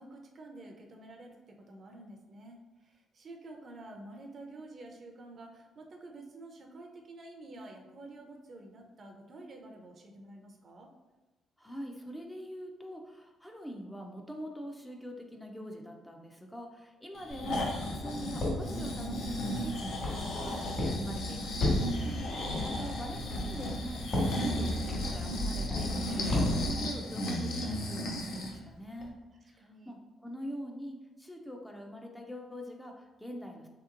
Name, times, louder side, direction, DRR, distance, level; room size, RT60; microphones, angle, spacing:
voice 1, 0.0-10.9 21.9-22.3 29.6-29.9, right 2 dB, 50° right, 2 dB, 0.5 m, -49 dB
voice 2, 11.6-21.7 22.6-29.2 29.4-33.7, equal, 5° left, 1 dB, 0.4 m, -44 dB
Breathing, 17.2-28.6 29.0-29.1, equal, 75° left, 0.5 m, -35 dB
Walk footsteps, 17.3-26.7, left 1 dB, 50° left, 1.3 m, -35 dB
3.4 x 2.9 x 2.4 m, 1.1 s
cardioid pair, 90°, 0 cm